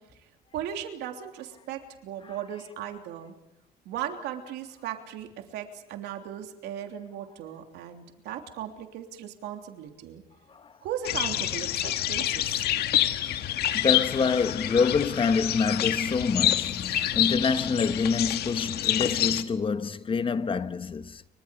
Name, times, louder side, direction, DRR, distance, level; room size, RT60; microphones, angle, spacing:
voice 1, 0.5-3.3 3.8-10.2 10.8-12.7, right 10 dB, 85° right, 3.2 m, -37 dB
sound 1, 11.0-19.4, left 12 dB, 70° left, 1.6 m, -27 dB
voice 2, 13.7-21.2, left 5 dB, 30° left, 1.3 m, -26 dB
29.5 x 24.5 x 5.2 m
cardioid pair, 110°, 17 cm